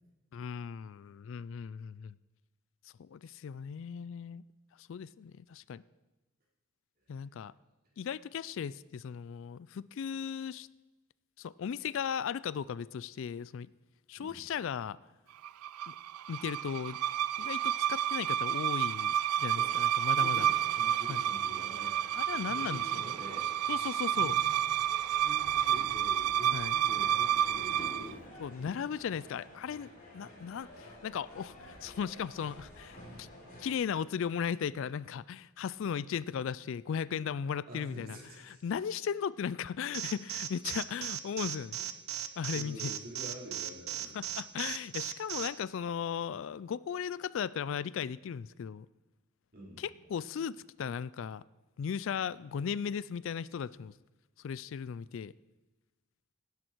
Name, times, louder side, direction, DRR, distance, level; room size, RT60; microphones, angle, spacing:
voice 1, 0.3-2.1 3.0-4.4 4.8-5.8 7.1-7.5 8.0-10.7 11.4-13.7 14.1-15.0 15.9-16.0 16.3-17.0 17.4-20.5 21.1-21.2 22.1-23.0 23.7-24.3 26.5-26.7 28.4-33.3 33.6-38.2 38.4-41.8 42.4-42.9 44.1-48.9 49.8-51.4 51.8-53.9 54.4-55.3, left 7 dB, 60° left, 20 dB, 0.3 m, -37 dB
sound 1, 15.4-28.1, right 10 dB, 90° right, 0.3 m, -30 dB
voice 2, 20.0-21.9 22.4-23.5 24.1-24.5 25.1-28.2 37.7-38.6 41.8-41.9 42.5-44.2 49.5-49.8, equal, 45° right, -4 dB, 4.5 m, -47 dB
sound 2, 20.3-33.7, left 1 dB, 40° left, 3.4 m, -52 dB
Alarm, 39.9-45.5, right 11 dB, 70° right, 0.8 m, -36 dB
17.5 x 10.5 x 4.6 m, 1.1 s
head